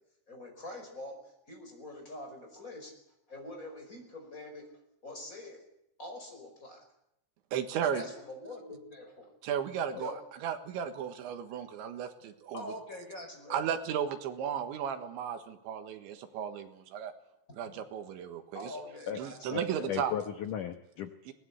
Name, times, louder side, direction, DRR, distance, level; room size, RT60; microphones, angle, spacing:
voice 1, 0.3-1.2 1.5-2.9 3.3-4.7 5.0-5.6 6.0-6.8 7.8-9.3 10.0-10.2 12.5-13.6 18.5-19.5, left 1 dB, 15° left, 3 dB, 5.1 m, -44 dB
voice 2, 7.5-8.1 9.4-10.1 10.4-12.6 13.5-17.1 17.5-18.7 19.2-20.1 21.3-21.4, right 8 dB, 80° right, 8 dB, 3.9 m, -35 dB
voice 3, 19.5-21.3, left 9 dB, 75° left, 8 dB, 1.9 m, -36 dB
22.0 x 19.0 x 8.2 m, 0.82 s
omnidirectional pair, 5.3 m